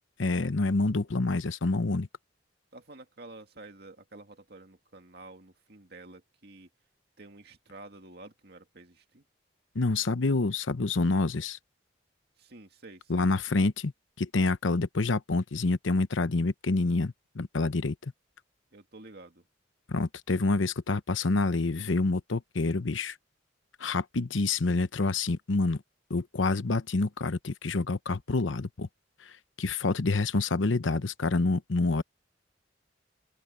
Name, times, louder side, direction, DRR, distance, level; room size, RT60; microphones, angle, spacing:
voice 1, 0.2-2.1 9.7-11.6 13.1-13.9 14.2-18.1 19.9-23.2 23.8-25.8 26.1-28.9 29.6-32.0, left 3 dB, 90° left, 0.9 m, -27 dB
voice 2, 2.7-6.7 7.2-9.2 12.4-13.3 18.7-19.5, right 2 dB, 55° right, 2.3 m, -50 dB
open air
head